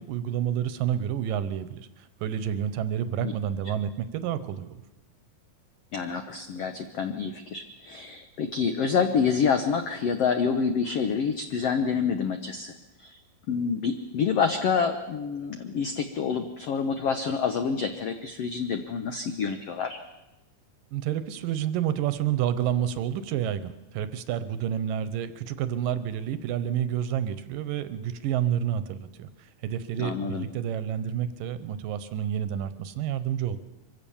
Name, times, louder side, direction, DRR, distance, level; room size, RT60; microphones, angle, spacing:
voice 1, 0.0-4.8 20.9-33.6, right 10 dB, 75° right, 13 dB, 2.4 m, -29 dB
voice 2, 5.9-12.7 13.0-13.2 13.5-20.0 30.0-30.5, left 6 dB, 85° left, 7 dB, 1.3 m, -27 dB
24.0 x 16.0 x 7.1 m, 1.0 s
omnidirectional pair, 4.2 m